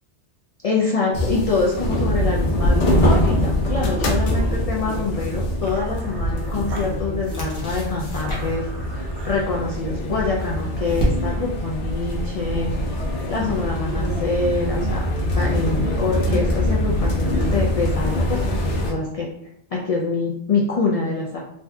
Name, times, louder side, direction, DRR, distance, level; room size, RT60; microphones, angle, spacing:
voice 1, 0.6-12.8 13.3-19.3 19.7-21.4, left 4 dB, 60° left, -3 dB, 0.4 m, -25 dB
sound 1, 1.1-18.9, left 1 dB, 90° left, 1.0 m, -23 dB
sound 2, 4.3-10.0, right 2 dB, 80° right, 0.9 m, -41 dB
sound 3, 4.9-5.2 6.1-6.9 7.2-8.7 9.9-11.6, left 1 dB, 30° left, 0.7 m, -29 dB
3.3 x 2.7 x 2.3 m, 0.73 s
omnidirectional pair, 1.1 m